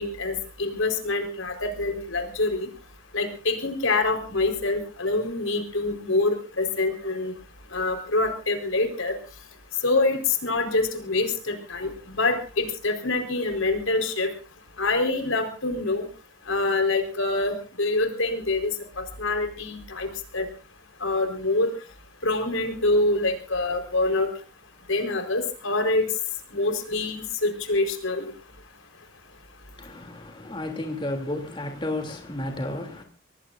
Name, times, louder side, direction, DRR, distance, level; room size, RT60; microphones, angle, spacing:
voice 1, 0.0-2.7 3.1-7.3 7.7-9.1 9.8-14.3 14.8-16.1 16.5-18.7 19.0-20.1 20.3-20.5 21.0-21.7 22.2-24.3 24.9-26.1 26.5-28.3, left 2 dB, 80° left, 4.5 m, -25 dB
voice 2, 29.8-33.0, left 1 dB, 25° left, 3.0 m, -32 dB
25.5 x 19.5 x 2.6 m
head